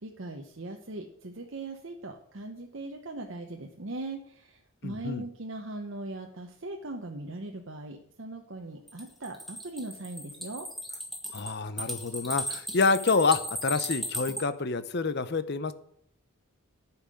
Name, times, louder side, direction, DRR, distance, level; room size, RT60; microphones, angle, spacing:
voice 1, 0.0-10.7, right 2 dB, 60° right, 2 dB, 0.9 m, -40 dB
voice 2, 4.8-5.2 11.3-15.7, left 4 dB, 50° left, 13 dB, 0.7 m, -27 dB
sound 1, 8.9-14.4, equal, ahead, 1.7 m, -36 dB
10.0 x 5.8 x 7.7 m, 0.66 s
head